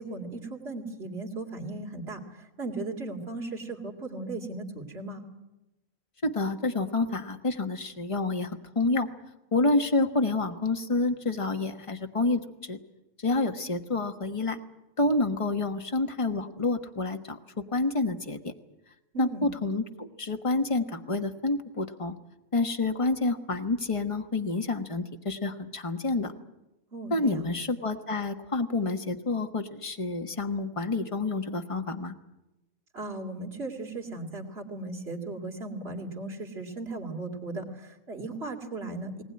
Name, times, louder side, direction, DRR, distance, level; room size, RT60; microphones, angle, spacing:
voice 1, 0.0-2.2 2.6-5.2 19.1-19.4 26.9-27.4 32.9-39.2, right 2 dB, 45° right, 1 dB, 3.0 m, -37 dB
voice 2, 6.2-9.1 9.5-12.8 13.2-14.6 15.0-17.4 17.7-18.5 19.2-22.1 22.5-26.3 27.1-32.1, left 2 dB, 25° left, 7 dB, 1.2 m, -28 dB
20.0 x 19.0 x 9.7 m, 0.97 s
omnidirectional pair, 1.5 m